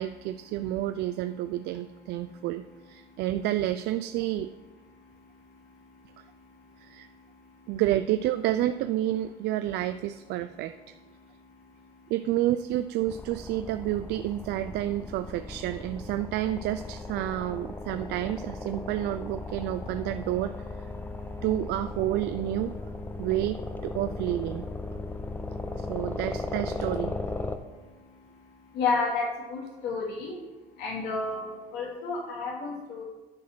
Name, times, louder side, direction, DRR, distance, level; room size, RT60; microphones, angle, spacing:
voice 1, 0.0-4.5 6.8-7.1 7.7-10.7 12.1-20.5 21.4-22.7 23.2-24.6 25.8-27.2, right 13 dB, 80° right, 10 dB, 0.4 m, -29 dB
sound 1, 13.1-27.6, left 2 dB, 10° left, 0.7 m, -37 dB
voice 2, 28.7-30.3 30.8-33.0, left 4 dB, 80° left, -3 dB, 2.8 m, -30 dB
10.5 x 4.8 x 6.1 m, 1.2 s
cardioid pair, 110°, 17 cm